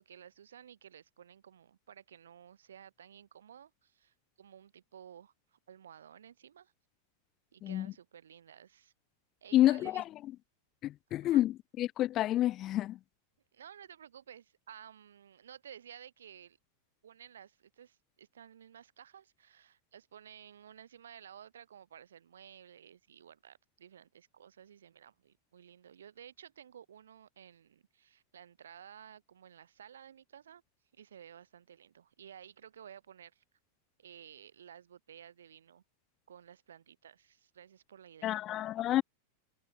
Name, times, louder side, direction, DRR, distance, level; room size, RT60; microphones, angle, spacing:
voice 1, 0.0-6.7 7.5-8.9 9.4-10.0 11.2-11.4 13.5-16.6 17.0-30.6 30.9-33.4 34.0-35.8 36.3-38.4, right 9 dB, 65° right, 4.4 m, -54 dB
voice 2, 9.5-10.0 10.8-13.0 38.2-39.0, left 14 dB, 35° left, 0.3 m, -29 dB
figure-of-eight pair, 90°, 0 cm